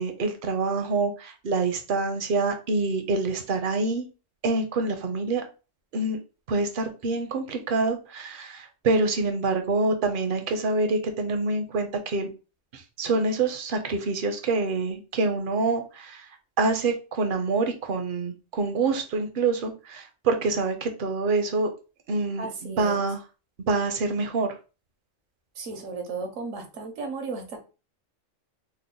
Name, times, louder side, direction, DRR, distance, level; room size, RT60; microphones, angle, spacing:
voice 1, 0.0-4.1 4.4-5.4 5.9-6.2 6.5-12.3 12.7-16.3 16.6-21.7 22.1-23.2 23.7-24.6, right 3 dB, 55° right, 6 dB, 0.6 m, -26 dB
voice 2, 22.4-23.0 25.6-27.6, right 4 dB, 85° right, 5 dB, 1.2 m, -34 dB
3.3 x 2.0 x 3.7 m, 0.33 s
omnidirectional pair, 1.3 m